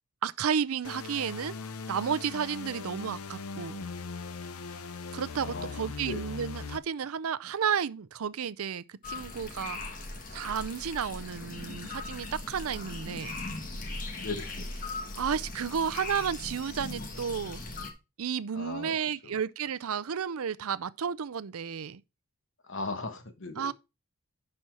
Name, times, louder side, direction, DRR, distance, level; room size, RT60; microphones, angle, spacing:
voice 1, 0.2-1.6 1.9-3.8 5.1-9.8 10.3-13.4 15.2-17.6 18.2-22.0 23.6-23.7, right 7 dB, 75° right, 0.5 m, -32 dB
sound 1, 0.8-6.8, left 4 dB, 80° left, 0.7 m, -40 dB
voice 2, 5.4-6.2 14.2-14.7 18.5-19.0 19.2-19.4 22.6-23.7, left 3 dB, 55° left, 1.2 m, -38 dB
sound 2, 9.0-17.9, left 2 dB, 35° left, 1.5 m, -39 dB
11.0 x 4.3 x 4.5 m
head